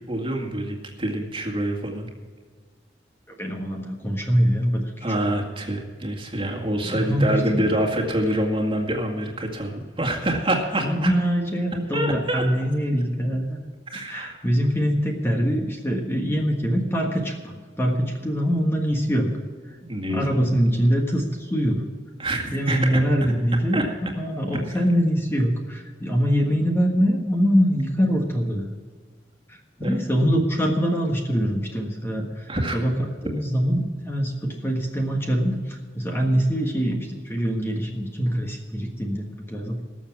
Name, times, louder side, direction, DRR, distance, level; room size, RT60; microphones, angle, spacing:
voice 1, 0.1-2.1 5.0-11.1 11.9-12.5 13.9-14.4 19.8-20.4 22.2-23.0 23.7-23.8 24.7-24.8 29.8-30.0 32.5-32.8, right 1 dB, 30° right, 1 dB, 2.1 m, -26 dB
voice 2, 3.4-4.9 6.9-7.7 10.8-13.6 13.9-19.3 20.1-21.9 22.5-23.8 24.2-28.7 29.5-32.4 32.7-32.9 33.2-39.9, equal, 15° left, 1 dB, 1.5 m, -23 dB
19.0 x 7.3 x 6.1 m, 1.5 s
head